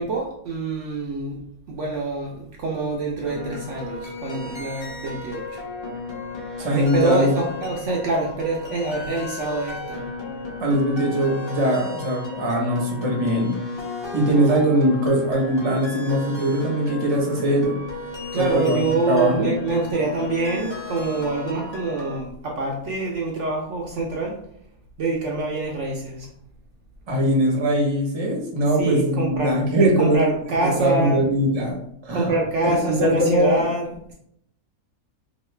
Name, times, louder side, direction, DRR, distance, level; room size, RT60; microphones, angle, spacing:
voice 1, 0.0-1.4 1.7-5.4 6.7-10.0 18.3-24.4 25.0-26.3 28.8-31.2 32.1-34.1, right 2 dB, 65° right, -2 dB, 0.8 m, -26 dB
sound 1, 3.2-22.2, left 3 dB, 25° left, 0.8 m, -35 dB
voice 2, 6.6-7.4 10.6-13.5 14.1-17.7 18.3-18.8 19.1-19.5 27.1-30.3 30.6-31.8 32.0-32.3 32.6-33.6, right 1 dB, 25° right, -2 dB, 0.7 m, -21 dB
3.0 x 2.4 x 3.2 m, 0.71 s
omnidirectional pair, 1.5 m